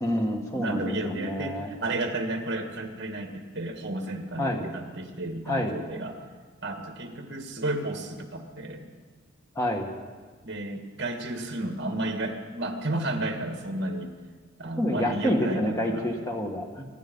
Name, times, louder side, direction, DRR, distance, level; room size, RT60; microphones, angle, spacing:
voice 1, 0.0-1.7 4.4-4.6 5.5-5.8 9.6-9.9 14.8-16.8, left 1 dB, 15° left, 1 dB, 1.7 m, -28 dB
voice 2, 0.5-6.2 6.6-8.9 10.4-14.1 14.6-16.1, right 2 dB, 55° right, 4 dB, 2.0 m, -32 dB
24.5 x 10.5 x 5.5 m, 1.5 s
head